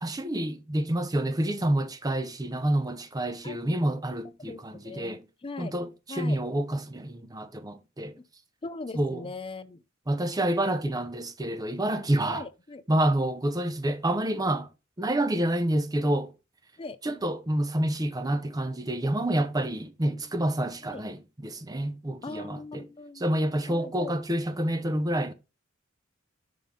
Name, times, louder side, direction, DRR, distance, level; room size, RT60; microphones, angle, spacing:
voice 1, 0.0-5.2 5.6-8.2 8.9-9.3 10.1-12.5 12.9-14.7 15.0-16.3 17.0-22.9 23.2-25.3, right 1 dB, 20° right, 0.7 m, -28 dB
voice 2, 4.4-5.7 6.1-6.4 8.6-9.8 10.8-10.9 12.3-12.8 16.8-17.0 20.0-20.2 20.9-21.0 22.2-23.2 23.7-24.1, left 3 dB, 25° left, 0.5 m, -40 dB
5.5 x 5.3 x 3.7 m
head